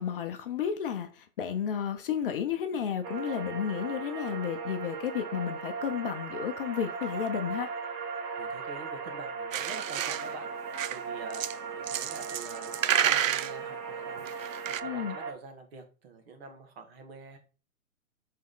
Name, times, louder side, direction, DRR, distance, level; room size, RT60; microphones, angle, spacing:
voice 1, 0.0-7.7 14.8-15.2, left 8 dB, 40° left, 0.7 m, -32 dB
sound 1, 3.0-15.3, right 5 dB, 20° right, 0.6 m, -38 dB
voice 2, 8.4-17.4, right 3 dB, 45° right, 1.7 m, -47 dB
sound 2, 9.5-10.3 10.7-11.0 11.3-11.5 11.9-13.5 14.2-14.8, right 10 dB, 65° right, 0.5 m, -30 dB
6.9 x 3.7 x 3.7 m
hypercardioid pair, 130°, 44 cm